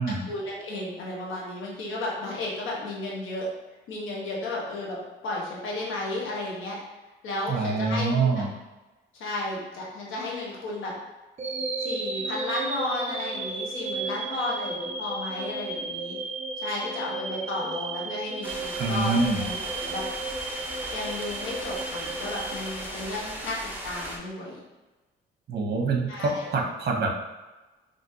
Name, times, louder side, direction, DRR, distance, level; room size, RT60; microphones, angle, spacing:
voice 1, 0.3-3.5 3.9-5.0 5.2-6.8 7.2-8.3 9.1-10.9 11.8-16.2 16.6-19.1 19.5-20.0 20.9-23.6 23.8-24.6 26.1-26.5, left 2 dB, 85° left, -3 dB, 1.3 m, -33 dB
voice 2, 7.5-8.5 18.7-19.5 25.5-27.1, right 3 dB, 55° right, 1 dB, 0.9 m, -25 dB
sound 1, 11.4-23.5, right 3 dB, 35° right, 0.6 m, -34 dB
sound 2, 18.4-24.2, right 1 dB, 10° right, 0.9 m, -37 dB
5.0 x 3.1 x 2.8 m, 1.1 s
cardioid pair, 90°, 20 cm